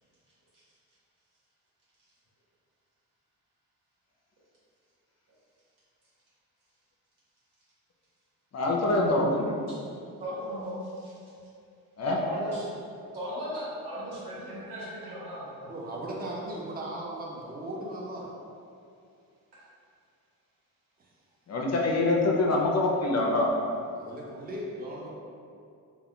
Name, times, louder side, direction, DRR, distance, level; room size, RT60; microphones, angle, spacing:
voice 1, 8.5-9.5 12.0-12.2 21.5-23.5, left 2 dB, 45° left, -1 dB, 0.5 m, -25 dB
voice 2, 10.2-11.1 12.2-12.7 13.1-15.8, equal, 85° right, -9 dB, 1.2 m, -37 dB
voice 3, 15.7-18.3 24.0-25.1, right 1 dB, 25° right, -3 dB, 0.5 m, -37 dB
2.3 x 2.3 x 3.5 m, 2.5 s
cardioid pair, 75°, 39 cm